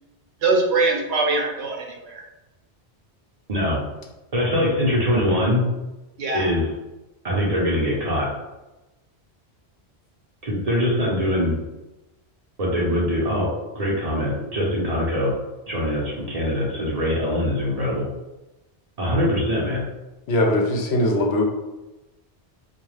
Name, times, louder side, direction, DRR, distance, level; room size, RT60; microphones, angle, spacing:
voice 1, 0.4-2.2 6.2-6.4, right 3 dB, 75° right, 1 dB, 0.8 m, -22 dB
voice 2, 3.5-3.8 4.3-5.6 6.3-6.7 7.2-8.3 10.4-11.6 12.6-13.5 13.7-15.3 15.7-18.0 19.0-19.8, left 1 dB, 40° right, -4 dB, 0.7 m, -22 dB
voice 3, 20.3-21.5, left 1 dB, 75° left, 1 dB, 0.8 m, -20 dB
2.3 x 2.3 x 3.1 m, 1.0 s
omnidirectional pair, 1.1 m